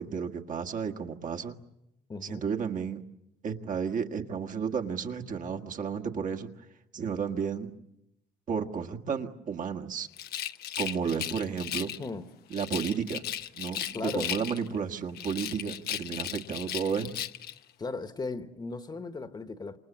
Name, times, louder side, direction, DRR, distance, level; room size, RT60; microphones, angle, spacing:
voice 1, 0.0-1.6 2.2-3.0 3.4-6.5 6.9-7.7 8.5-10.1 10.8-11.9 12.5-13.2 13.5-17.1, right 6 dB, 50° right, 1.8 m, -32 dB
voice 2, 2.1-2.4 12.0-12.3 13.9-14.3 17.8-19.8, left 3 dB, 25° left, 1.4 m, -36 dB
Rattle, 10.1-12.1 12.5-14.8 15.1-17.6, left 11 dB, 70° left, 1.0 m, -36 dB
28.0 x 27.5 x 7.4 m
cardioid pair, 110°, 17 cm